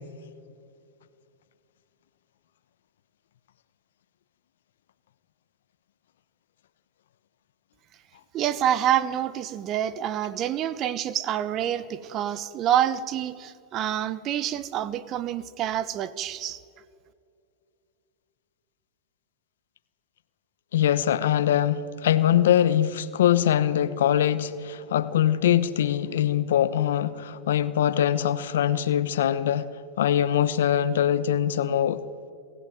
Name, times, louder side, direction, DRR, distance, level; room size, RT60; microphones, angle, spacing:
voice 1, 8.3-16.6, right 11 dB, 40° right, 15 dB, 1.1 m, -27 dB
voice 2, 20.7-29.7 30.0-32.0, left 10 dB, 75° left, 14 dB, 1.0 m, -23 dB
27.0 x 15.0 x 9.3 m, 2.4 s
hypercardioid pair, 110°, 0 cm